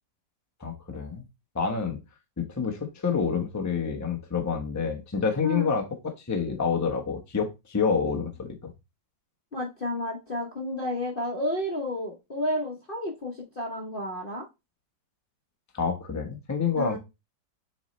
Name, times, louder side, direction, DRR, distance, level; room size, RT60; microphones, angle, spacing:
voice 1, 0.6-1.2 1.5-2.0 2.4-8.7 15.7-17.0, left 5 dB, 15° left, 0.6 m, -28 dB
voice 2, 9.5-14.5 16.8-17.0, left 1 dB, 35° left, 1.0 m, -31 dB
7.1 x 4.2 x 3.1 m
omnidirectional pair, 2.1 m